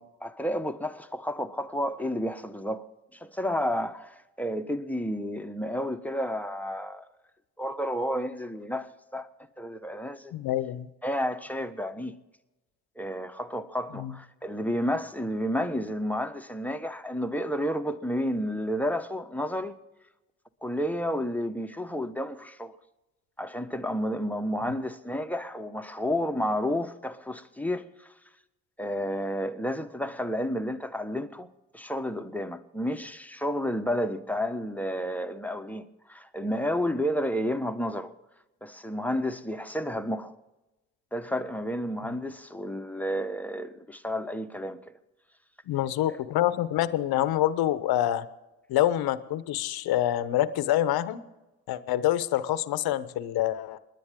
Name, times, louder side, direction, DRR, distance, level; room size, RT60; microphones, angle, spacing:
voice 1, 0.0-2.9 3.1-7.0 7.6-9.3 9.6-10.3 11.0-12.2 13.0-19.8 20.6-22.8 23.4-28.1 28.8-31.5 31.7-38.1 38.6-40.3 41.1-44.8, equal, 5° left, 1.3 m, -31 dB
voice 2, 10.3-10.9 14.0-14.1 45.7-48.3 48.7-51.2 51.7-53.8, left 13 dB, 70° left, 1.0 m, -26 dB
28.5 x 10.0 x 3.7 m
hypercardioid pair, 45°, 39 cm